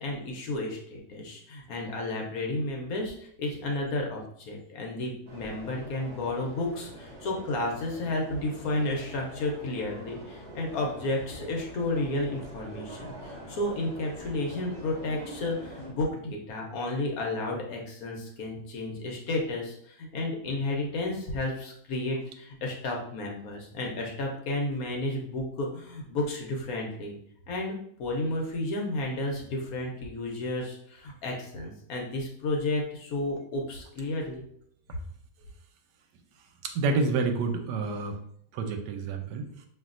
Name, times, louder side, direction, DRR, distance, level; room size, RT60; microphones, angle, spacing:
voice 1, 0.0-27.2 27.5-34.4, left 2 dB, 65° left, 0 dB, 1.1 m, -32 dB
sound 1, 5.3-15.9, right 1 dB, 40° right, 1.0 m, -44 dB
voice 2, 36.6-38.2 38.5-39.5, right 4 dB, 90° right, 6 dB, 1.2 m, -28 dB
5.3 x 2.7 x 2.5 m, 0.66 s
omnidirectional pair, 1.8 m